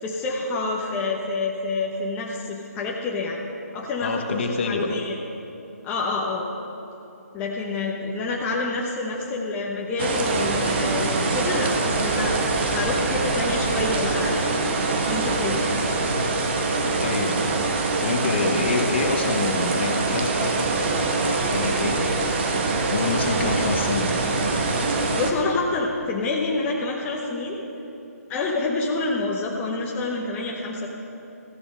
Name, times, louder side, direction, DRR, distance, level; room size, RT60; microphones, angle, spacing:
voice 1, 0.0-3.4 3.7-5.2 5.8-6.4 7.3-14.5 15.1-15.8 25.1-27.6 28.3-30.9, left 3 dB, 15° left, -2 dB, 0.9 m, -27 dB
voice 2, 4.0-4.9 17.0-17.6 18.0-24.1, left 4 dB, 45° left, 4 dB, 1.2 m, -27 dB
sound 1, 10.0-25.3, right 3 dB, 40° right, 1.2 m, -24 dB
14.5 x 6.9 x 6.4 m, 2.9 s
hypercardioid pair, 155°, 9 cm